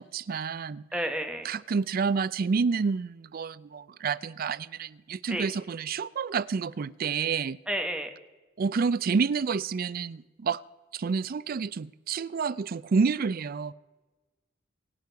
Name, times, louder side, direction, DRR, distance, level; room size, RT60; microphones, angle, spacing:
voice 1, 0.0-0.8 1.4-7.6 8.6-10.6 10.9-13.7, right 5 dB, 50° right, 19 dB, 0.4 m, -29 dB
voice 2, 0.9-1.5 5.3-5.5 7.7-8.1, right 1 dB, 5° right, 5 dB, 1.3 m, -31 dB
23.5 x 8.5 x 4.7 m, 1.2 s
head